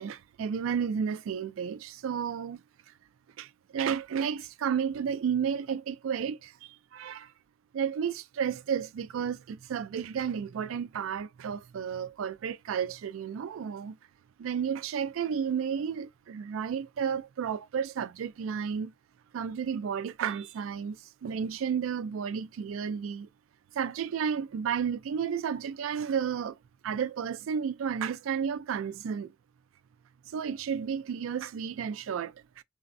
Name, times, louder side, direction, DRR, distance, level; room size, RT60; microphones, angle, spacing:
voice 1, 0.0-2.6 3.4-3.5 3.7-7.3 7.7-14.0 14.4-18.9 19.3-23.3 23.8-26.6 26.8-29.3 30.3-32.6, right 7 dB, 90° right, 0.3 m, -32 dB
3.3 x 2.0 x 2.5 m
head